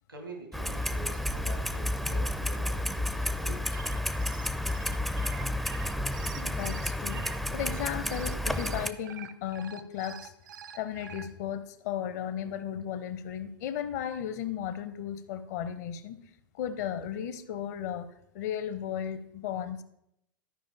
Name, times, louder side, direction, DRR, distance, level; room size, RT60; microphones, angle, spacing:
voice 1, 0.1-3.8, right 2 dB, 80° right, 3 dB, 1.4 m, -46 dB
Clock, 0.5-8.9, left 1 dB, ahead, 0.4 m, -31 dB
sound 1, 3.5-11.3, right 8 dB, 65° right, 0.6 m, -46 dB
voice 2, 5.0-5.3 6.3-7.2 7.5-10.3 10.7-16.2 16.6-18.1 18.3-19.8, left 9 dB, 50° left, 13 dB, 0.7 m, -35 dB
13.0 x 5.1 x 3.5 m, 0.79 s
figure-of-eight pair, 90°, 11 cm